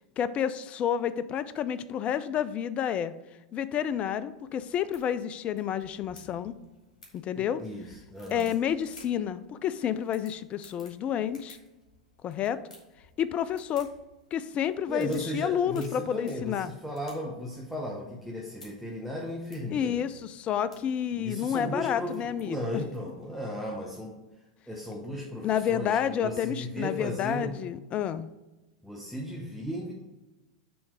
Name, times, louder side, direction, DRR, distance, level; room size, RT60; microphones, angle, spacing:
voice 1, 0.2-3.1 3.5-6.5 7.1-7.6 8.3-11.6 12.2-12.6 13.2-13.9 14.3-16.7 19.7-22.8 25.4-28.3, left 9 dB, 30° left, 15 dB, 0.3 m, -30 dB
sound 1, 3.9-23.3, left 2 dB, 80° left, 1.8 m, -58 dB
voice 2, 7.4-8.5 14.9-20.0 21.2-24.2 24.7-27.5 28.8-29.9, equal, ahead, -3 dB, 0.8 m, -36 dB
7.0 x 3.2 x 4.9 m, 1.1 s
figure-of-eight pair, 90°, 4 cm